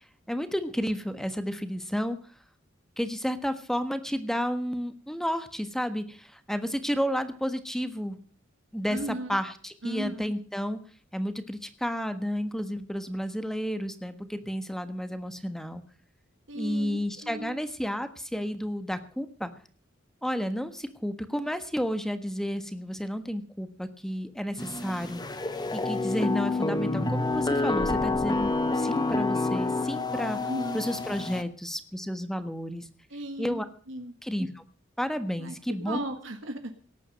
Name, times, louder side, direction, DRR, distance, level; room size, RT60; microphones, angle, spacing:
voice 1, 0.3-2.2 3.0-8.2 8.7-10.8 11.1-15.8 16.5-19.5 20.2-25.2 25.7-30.4 30.7-32.9 33.4-33.6 34.2-34.6 35.0-36.0, equal, ahead, 10 dB, 1.4 m, -31 dB
voice 2, 8.9-9.4 9.8-10.3 16.5-17.6 30.4-30.9 33.1-33.6 33.9-34.1 35.4-36.7, right 1 dB, 70° right, 6 dB, 1.6 m, -36 dB
sound 1, 24.6-31.4, left 3 dB, 20° left, 1.1 m, -28 dB
18.0 x 9.0 x 6.5 m, 0.42 s
head